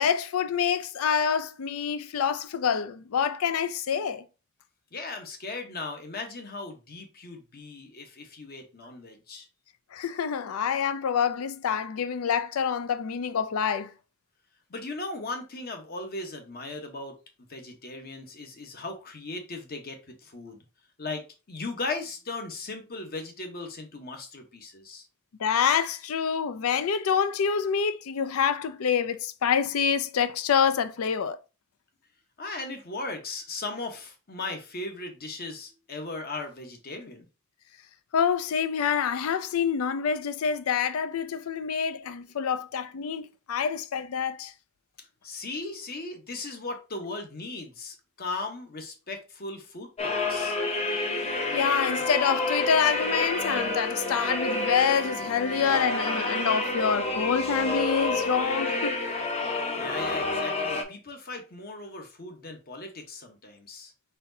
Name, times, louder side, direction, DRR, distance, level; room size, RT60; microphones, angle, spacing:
voice 1, 0.0-4.2 9.9-13.9 25.4-31.4 38.1-44.5 51.5-59.0 59.4-59.5, left 7 dB, 80° left, 0.4 m, -26 dB
voice 2, 4.9-9.5 14.7-17.1 17.5-20.6 21.0-25.1 32.4-37.3 45.2-50.6 59.8-63.9, left 3 dB, 45° left, 1.0 m, -37 dB
sound 1, 50.0-60.8, left 2 dB, 30° left, 0.7 m, -29 dB
4.2 x 3.9 x 2.7 m
head